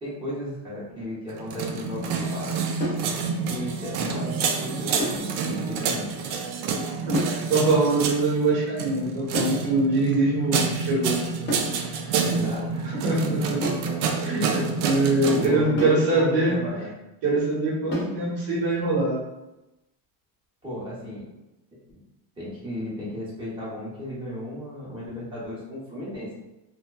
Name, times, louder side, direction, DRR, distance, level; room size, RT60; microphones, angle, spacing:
voice 1, 0.0-2.5 3.5-6.1 12.2-13.4 14.3-14.7 15.2-16.9 20.6-21.2 21.9-22.0 22.4-26.3, left 1 dB, 10° right, -8 dB, 0.8 m, -34 dB
sound 1, 1.3-15.5, right 5 dB, 90° right, 0.5 m, -28 dB
sound 2, 2.8-3.1 5.0-5.3 7.1-7.4 9.3-9.7 11.5-11.8 13.6-13.9 15.8-16.1 17.9-18.2, equal, 25° left, 0.6 m, -30 dB
voice 2, 7.1-11.1 13.0-13.7 14.2-16.6 17.2-19.1, right 2 dB, 55° right, -6 dB, 1.0 m, -23 dB
2.9 x 2.2 x 2.2 m, 0.97 s
cardioid pair, 155°, 43 cm